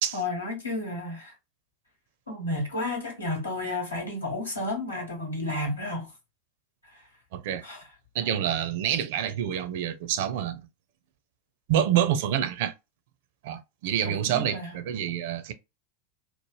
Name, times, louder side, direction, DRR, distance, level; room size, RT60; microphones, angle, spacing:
voice 1, 0.1-1.3 2.3-6.1 6.9-7.0 7.6-7.8 14.0-14.8, left 2 dB, 90° left, 1.1 m, -32 dB
voice 2, 7.3-7.6 8.1-10.6 11.7-12.7 13.4-15.5, right 10 dB, 60° right, 0.5 m, -27 dB
3.0 x 2.0 x 3.2 m
figure-of-eight pair, 85°, 0 cm